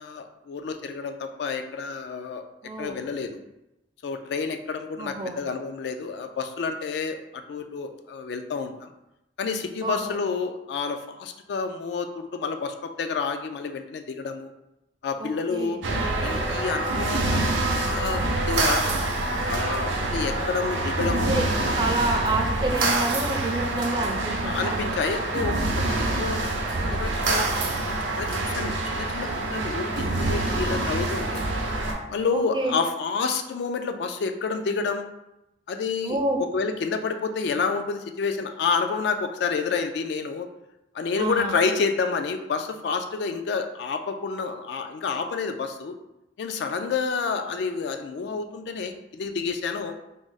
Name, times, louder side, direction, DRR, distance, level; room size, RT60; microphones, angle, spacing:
voice 1, 0.0-2.4 2.8-3.3 4.0-8.9 9.4-14.5 15.0-15.8 16.2-18.8 19.4-21.4 24.4-27.5 27.9-31.5 32.1-35.1 35.7-40.5 40.9-46.0 46.4-50.0, left 5 dB, 60° left, 7 dB, 0.3 m, -29 dB
voice 2, 2.6-3.0 5.0-5.4 9.8-10.2 15.2-15.8 21.3-21.5 21.7-24.7 32.3-32.7 36.0-36.4 41.2-41.6, right 2 dB, 25° right, 3 dB, 0.4 m, -28 dB
sound 1, 15.8-31.9, right 2 dB, 80° right, 0.5 m, -26 dB
3.6 x 2.0 x 3.9 m, 0.89 s
head